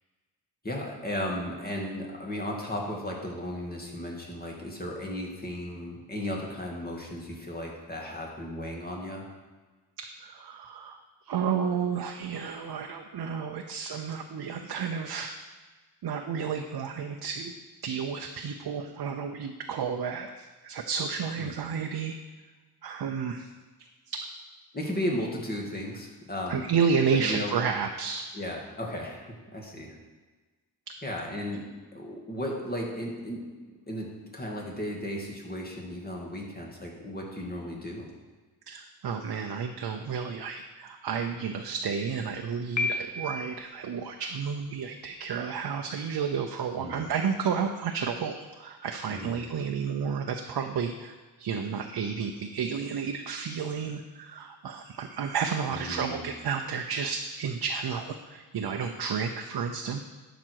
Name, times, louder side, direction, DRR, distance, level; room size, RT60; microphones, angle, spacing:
voice 1, 0.6-9.2 21.4-21.6 24.7-26.7 27.1-27.6 28.3-29.3 29.5-30.0 31.0-31.6 31.9-33.5 33.9-38.1 46.8-47.0 49.1-49.4 55.7-56.3, left 1 dB, 20° left, -1 dB, 2.3 m, -35 dB
voice 2, 10.0-15.3 16.0-17.5 17.8-22.2 22.8-23.5 24.1-24.2 26.5-28.2 30.9-31.0 38.7-60.0, right 6 dB, 60° right, 4 dB, 0.7 m, -31 dB
Piano, 42.8-43.7, left 3 dB, 40° left, 1.0 m, -31 dB
11.5 x 5.2 x 4.7 m, 1.3 s
cardioid pair, 80°, 42 cm